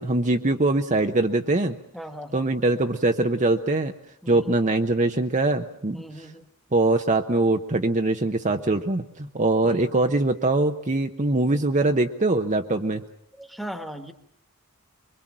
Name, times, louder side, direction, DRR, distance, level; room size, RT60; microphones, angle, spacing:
voice 1, 0.0-1.7 2.3-3.9 4.3-6.0 6.7-13.0, right 2 dB, 35° right, 5 dB, 0.9 m, -22 dB
voice 2, 1.9-2.5 4.2-4.6 5.9-6.4 9.6-10.0 13.4-14.1, equal, ahead, 7 dB, 1.6 m, -38 dB
25.0 x 22.5 x 7.6 m, 0.67 s
head